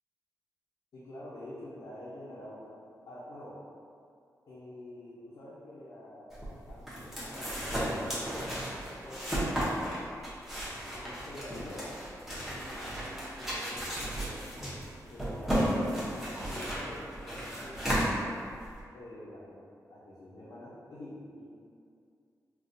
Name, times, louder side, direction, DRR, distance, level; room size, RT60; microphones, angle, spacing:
voice 1, 0.9-2.8 3.1-3.6 4.5-8.2 9.0-9.8 10.9-11.9 12.5-14.4 15.1-18.3 18.9-19.6 19.9-21.4, left 1 dB, 75° left, -9 dB, 0.6 m, -47 dB
sound 1, 6.3-18.8, equal, 5° right, 0.7 m, -34 dB
4.1 x 2.3 x 2.6 m, 2.3 s
wide cardioid pair, 160°, 7 cm